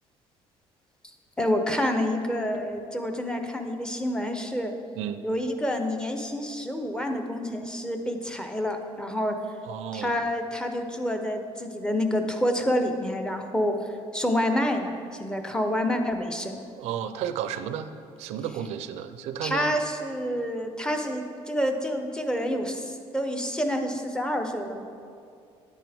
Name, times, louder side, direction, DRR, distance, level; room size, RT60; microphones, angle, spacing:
voice 1, 1.4-4.7 5.2-9.4 9.9-13.8 14.1-16.6 19.4-24.8, equal, 5° left, 5 dB, 0.7 m, -28 dB
voice 2, 9.7-10.2 16.8-17.9 18.2-19.7, right 9 dB, 85° right, 11 dB, 0.5 m, -32 dB
9.5 x 9.2 x 3.5 m, 2.4 s
cardioid pair, 130°, 11 cm